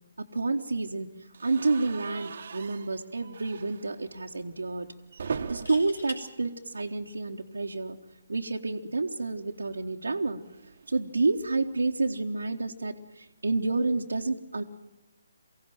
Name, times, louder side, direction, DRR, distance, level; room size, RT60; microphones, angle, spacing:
voice 1, 0.2-1.1 1.4-4.9 5.5-8.0 8.3-10.4 10.9-14.6, right 3 dB, 70° right, 1 dB, 1.2 m, -29 dB
sound 1, 1.3-7.4 7.7-8.1 9.5-11.8, right 5 dB, 50° right, 1.2 m, -42 dB
sound 2, 3.1-3.2 5.4-6.2 8.0-8.3, left 1 dB, 75° left, 4.3 m, -42 dB
23.0 x 16.5 x 9.1 m, 0.97 s
figure-of-eight pair, 140°, 0 cm